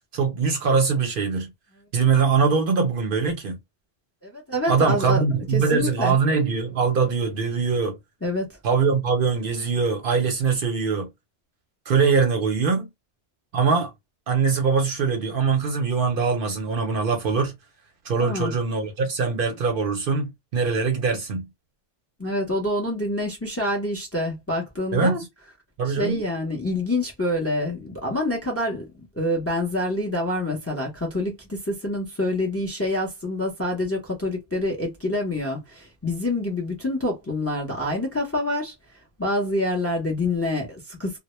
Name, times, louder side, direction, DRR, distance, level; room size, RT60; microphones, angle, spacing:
voice 1, 0.1-1.5 1.9-3.6 4.7-8.0 8.6-11.1 11.9-12.9 13.5-13.9 14.3-17.5 18.0-21.4 24.9-25.2 25.8-26.2, right 5 dB, 60° right, 0.7 m, -22 dB
voice 2, 4.2-5.2 5.5-6.1 8.2-8.5 18.2-18.5 22.2-25.2 25.9-38.7 39.2-41.2, left 1 dB, 20° left, 0.5 m, -26 dB
2.1 x 2.1 x 2.9 m
omnidirectional pair, 1.2 m